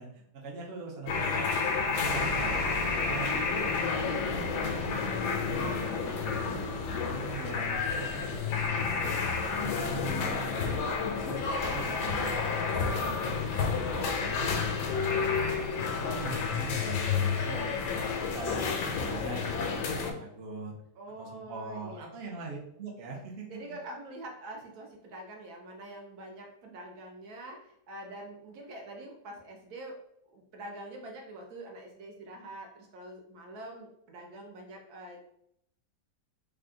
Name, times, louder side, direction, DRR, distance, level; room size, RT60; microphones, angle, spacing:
voice 1, 0.0-3.7 4.0-6.7 7.0-10.8 11.1-13.4 13.7-17.7 18.1-20.7 21.2-23.6 23.9-24.0, right 3 dB, 55° right, -1 dB, 0.8 m, -42 dB
sound 1, 1.1-20.1, left 5 dB, 85° left, 1.2 m, -30 dB
sound 2, 2.0-7.7, left 2 dB, 65° left, 0.8 m, -40 dB
voice 2, 21.0-22.1 23.5-30.0 30.3-35.2, right 1 dB, 70° right, 1 dB, 1.2 m, -45 dB
3.5 x 2.3 x 3.7 m, 0.72 s
omnidirectional pair, 1.8 m